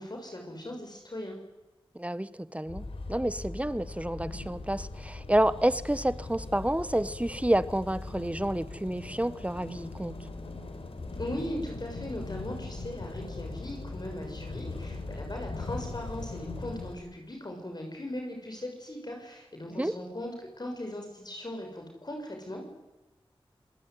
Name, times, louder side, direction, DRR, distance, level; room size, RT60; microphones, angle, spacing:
voice 1, 0.0-1.4 11.1-22.6, left 1 dB, 45° left, 2 dB, 6.6 m, -39 dB
voice 2, 1.9-10.1 19.8-19.9, right 1 dB, 15° right, 15 dB, 1.3 m, -29 dB
sound 1, 2.7-17.0, left 3 dB, 75° left, 5.2 m, -40 dB
26.5 x 21.0 x 9.6 m, 1.1 s
cardioid pair, 50°, 10 cm